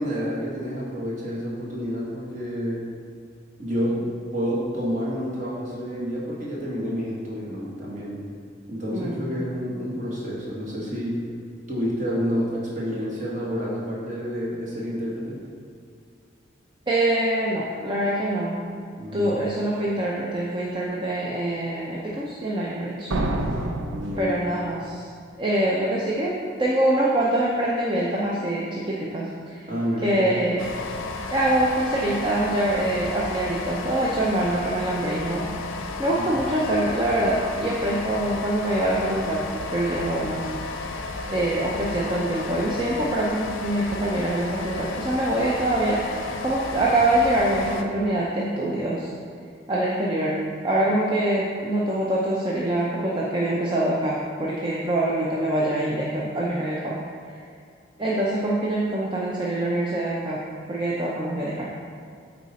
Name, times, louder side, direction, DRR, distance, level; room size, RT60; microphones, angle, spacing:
voice 1, 0.0-2.8 3.6-8.2 8.7-11.2 11.7-15.4 19.0-19.4 23.9-24.4 29.7-30.4 36.2-36.5, equal, 40° right, -5 dB, 1.6 m, -29 dB
voice 2, 8.9-9.4 16.9-18.7 19.1-23.1 24.2-25.1 25.4-29.7 30.0-30.6 31.3-35.5 36.0-40.9 41.3-49.1 49.7-57.0 57.3-57.4 58.0-60.4 60.7-61.7, right 1 dB, 25° right, -5 dB, 0.6 m, -24 dB
sound 1, 23.1-24.9, right 1 dB, 85° right, 0.6 m, -28 dB
sound 2, 30.6-47.8, left 3 dB, 90° left, 0.6 m, -33 dB
8.6 x 4.1 x 4.2 m, 2.3 s
head